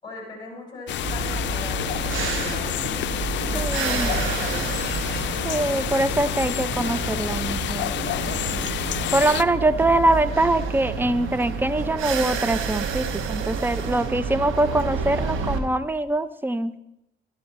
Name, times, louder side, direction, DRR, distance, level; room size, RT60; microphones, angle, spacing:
voice 1, 0.0-3.0 3.4-4.7, left 2 dB, 20° left, -1 dB, 5.3 m, -39 dB
sound 1, 0.9-9.4, left 12 dB, 65° left, 0.5 m, -29 dB
sound 2, 1.0-15.6, right 5 dB, 85° right, 1.3 m, -29 dB
voice 2, 3.5-4.1 5.4-7.9 9.1-16.7, right 2 dB, 10° right, 13 dB, 0.6 m, -23 dB
12.0 x 11.5 x 4.2 m, 0.86 s
cardioid pair, 90°, 20 cm